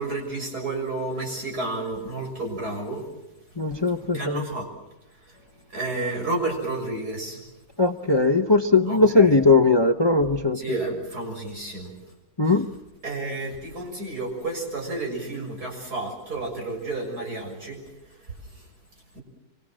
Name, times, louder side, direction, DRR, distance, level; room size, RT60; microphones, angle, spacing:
voice 1, 0.0-3.0 4.1-4.7 5.7-7.4 8.9-9.3 10.6-11.9 13.0-17.8 18.5-18.6, right 2 dB, 60° right, 1 dB, 7.0 m, -31 dB
voice 2, 3.6-4.4 7.8-10.6 12.4-12.7, left 3 dB, 20° left, 8 dB, 0.7 m, -19 dB
27.0 x 24.5 x 7.6 m, 0.93 s
omnidirectional pair, 1.9 m